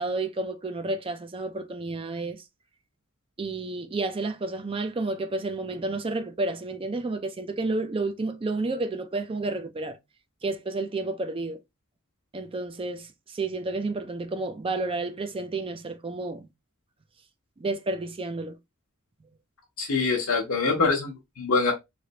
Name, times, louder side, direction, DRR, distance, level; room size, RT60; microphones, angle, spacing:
voice 1, 0.0-2.4 3.4-10.0 10.4-11.6 12.3-16.5 17.6-18.6, right 2 dB, 25° right, 0.4 m, -31 dB
voice 2, 19.8-21.7, left 4 dB, 70° left, 0.8 m, -24 dB
3.2 x 2.9 x 2.8 m
head